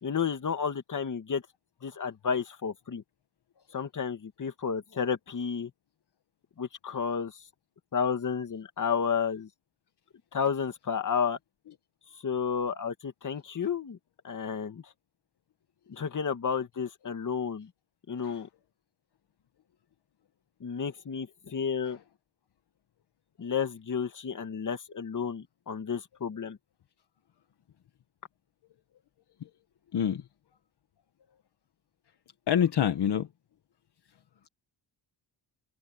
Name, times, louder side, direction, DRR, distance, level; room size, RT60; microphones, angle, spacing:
voice 1, 0.0-1.4 1.8-3.0 3.7-5.7 6.6-7.4 7.9-9.5 10.3-11.4 12.2-14.0 14.2-14.9 15.9-17.7 18.1-18.5 20.6-22.0 23.4-26.6, left 6 dB, 45° left, 2.3 m, -31 dB
voice 2, 29.9-30.2 32.5-33.3, left 9 dB, 65° left, 1.5 m, -26 dB
wide cardioid pair, 140°, 43 cm